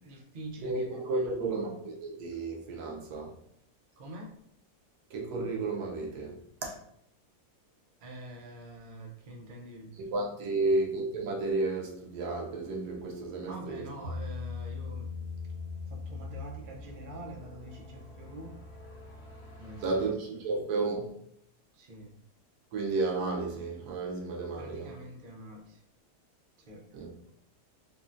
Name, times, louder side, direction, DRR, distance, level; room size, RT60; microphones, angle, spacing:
voice 1, 0.0-1.7 3.1-3.2 4.0-4.3 8.0-10.1 10.4-10.8 13.5-15.1 15.9-18.6 19.6-20.1 21.7-22.1 24.6-25.8 26.6-27.1, right 1 dB, 65° right, 0 dB, 0.5 m, -46 dB
voice 2, 0.6-3.4 5.1-6.8 10.0-13.9 19.8-21.1 22.7-25.0 26.9-27.1, right 3 dB, 85° right, 0 dB, 1.2 m, -32 dB
Bass guitar, 14.0-17.4, left 4 dB, 25° right, 0.8 m, -39 dB
sound 1, 14.5-20.1, left 1 dB, 55° left, 0.8 m, -49 dB
3.8 x 2.1 x 2.4 m, 0.71 s
omnidirectional pair, 1.6 m